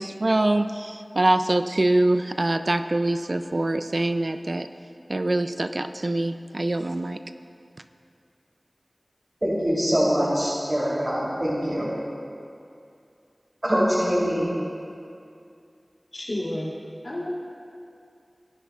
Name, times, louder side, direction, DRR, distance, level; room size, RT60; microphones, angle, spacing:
voice 1, 0.0-4.7 5.1-7.2, right 2 dB, 60° right, 9 dB, 0.4 m, -24 dB
voice 2, 9.4-11.9 13.6-14.5, equal, 35° right, -9 dB, 3.1 m, -23 dB
voice 3, 16.1-16.7 17.0-17.3, left 1 dB, 65° left, -6 dB, 2.8 m, -30 dB
19.5 x 10.0 x 2.4 m, 2.5 s
wide cardioid pair, 40°, 0 cm